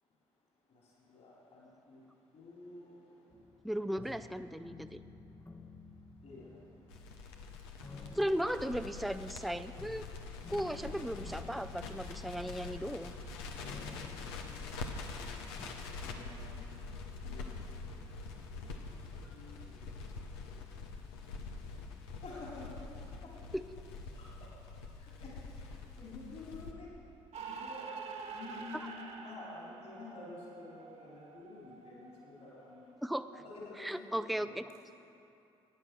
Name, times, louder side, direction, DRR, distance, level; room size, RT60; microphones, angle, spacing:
voice 1, 0.7-2.0 2.3-3.2 4.0-4.1 6.2-6.6 7.4-7.5 10.6-11.0 13.5-14.1 14.6-15.1 15.7-16.7 17.2-17.8 18.6-20.6 21.1-21.3 22.2-22.9 23.2-23.3 24.1-24.5 25.0-26.9 27.4-27.9 28.3-33.0 33.3-34.5, left 3 dB, 60° left, -5 dB, 4.0 m, -51 dB
sound 1, 3.3-15.8, left 3 dB, 25° left, 1.0 m, -53 dB
voice 2, 3.6-5.0 8.1-10.0 10.5-13.1 23.5-23.6 28.7-28.9 33.0-33.3 33.8-34.6, equal, ahead, 9 dB, 0.5 m, -36 dB
Crackle, 6.9-26.7, left 4 dB, 85° left, 1.0 m, -45 dB
sound 2, 27.3-32.9, right 5 dB, 60° right, 1.8 m, -47 dB
14.0 x 9.8 x 6.2 m, 2.7 s
hypercardioid pair, 50°, 13 cm